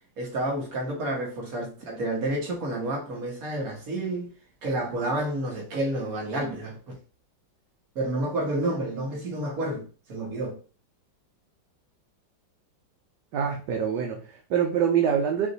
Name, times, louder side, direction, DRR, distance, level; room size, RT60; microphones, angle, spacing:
voice 1, 0.2-4.3 4.6-6.8 8.0-10.6, right 1 dB, 50° right, 1.8 m, -30 dB
voice 2, 13.3-15.5, right 8 dB, 70° right, 1.3 m, -25 dB
4.9 x 2.7 x 4.0 m
omnidirectional pair, 2.1 m